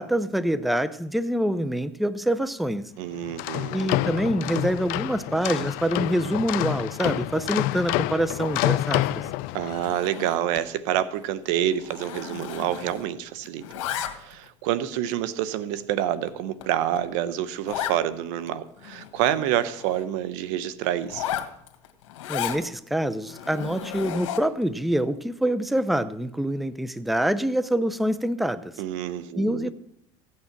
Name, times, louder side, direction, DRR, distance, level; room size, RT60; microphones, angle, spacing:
voice 1, 0.0-2.9 3.7-9.3 22.3-28.7 29.3-29.7, right 1 dB, ahead, 0.6 m, -26 dB
voice 2, 3.0-3.9 9.5-13.6 14.1-21.3 28.8-29.7, right 11 dB, 75° right, 0.9 m, -27 dB
sound 1, 3.2-9.9, left 16 dB, 70° left, 0.5 m, -28 dB
Zipper (clothing), 9.7-10.7 11.0-11.2 11.5-13.2 13.4-14.5 15.1-15.2 15.8-15.9 16.3-16.4 16.6-16.7 17.0-17.1 17.7-18.0 18.5-18.6 18.8-20.1 21.0-22.6 23.2-24.6, left 10 dB, 85° left, 1.5 m, -34 dB
15.5 x 8.7 x 5.9 m
supercardioid pair, 100°, 16 cm